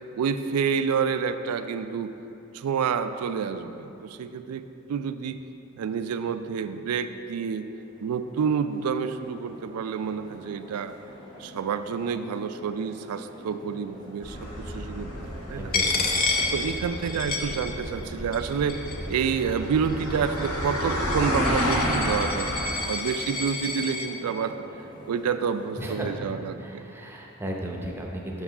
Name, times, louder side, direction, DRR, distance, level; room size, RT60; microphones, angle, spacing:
voice 1, 0.2-2.1 2.5-5.4 5.8-7.7 8.0-11.0 11.4-15.7 16.5-18.8 19.1-24.6 25.1-26.8, right 6 dB, 90° right, 10 dB, 0.3 m, -29 dB
sound 1, 7.1-25.9, equal, 20° left, 0.9 m, -47 dB
sound 2, 14.2-22.7, equal, 80° left, 1.4 m, -30 dB
voice 2, 15.5-16.1 25.8-26.1 26.6-28.4, right 1 dB, 10° right, -1 dB, 0.6 m, -35 dB
Coin (dropping), 15.7-18.1 18.3-19.1 19.8-24.1, left 3 dB, 40° left, 0.6 m, -30 dB
6.1 x 4.8 x 5.5 m, 2.9 s
head